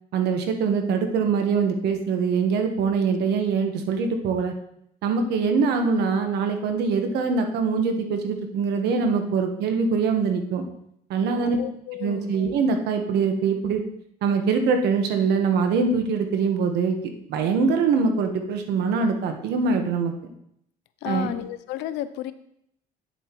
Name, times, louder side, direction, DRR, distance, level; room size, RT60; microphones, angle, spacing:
voice 1, 0.1-4.5 5.0-10.6 11.1-11.6 12.0-13.8 14.2-20.1 21.0-21.3, right 5 dB, 80° right, 5 dB, 1.2 m, -23 dB
voice 2, 11.3-12.4 21.0-22.3, left 12 dB, 90° left, 13 dB, 0.5 m, -32 dB
9.3 x 7.2 x 3.0 m, 0.75 s
cardioid pair, 110°, 17 cm